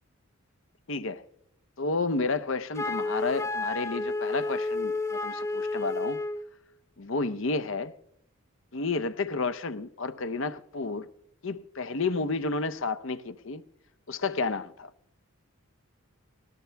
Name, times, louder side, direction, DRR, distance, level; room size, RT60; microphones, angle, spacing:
voice 1, 0.9-1.2 1.8-6.2 7.0-7.9 8.7-11.1 11.4-13.6 14.1-14.9, left 3 dB, 60° left, 0.7 m, -31 dB
Wind instrument woodwind instrument, 2.7-6.5, left 3 dB, 15° left, 0.5 m, -31 dB
19.0 x 18.5 x 3.4 m
head